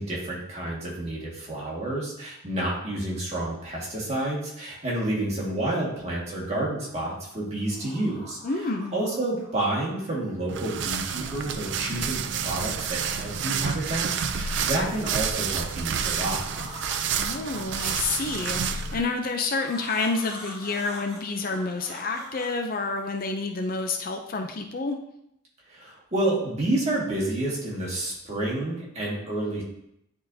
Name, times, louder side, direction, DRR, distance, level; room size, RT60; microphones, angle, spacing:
voice 1, 0.0-8.4 8.9-16.7 25.7-29.6, right 1 dB, 30° right, -5 dB, 1.8 m, -29 dB
sound 1, 6.7-7.3 7.6-9.6 10.0-11.9 12.2-13.5 14.0-15.7 16.4-19.0 19.5-23.3, equal, 5° right, 2.5 m, -45 dB
voice 2, 8.4-8.9 17.1-25.0, left 3 dB, 45° left, 4 dB, 0.5 m, -29 dB
sound 2, 10.5-19.0, right 7 dB, 60° right, 0.4 m, -29 dB
10.0 x 3.7 x 2.7 m, 0.78 s
head